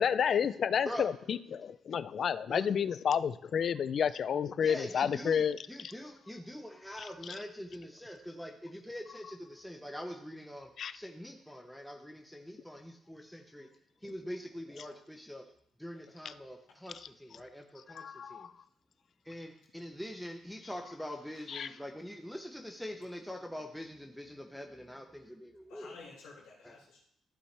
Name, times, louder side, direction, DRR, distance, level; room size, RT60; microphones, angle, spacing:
voice 1, 0.0-5.9 7.0-7.4 10.8-11.0 16.2-16.3 17.9-18.5 21.5-21.8, left 7 dB, 55° left, 16 dB, 0.4 m, -31 dB
voice 2, 4.6-5.4 5.7-13.7 14.0-15.4 15.8-18.0 18.3-18.5 19.3-25.9, equal, ahead, 2 dB, 0.8 m, -44 dB
voice 3, 25.7-27.0, left 4 dB, 90° left, -8 dB, 2.0 m, -53 dB
14.5 x 5.3 x 3.3 m, 0.71 s
cardioid pair, 90°, 0 cm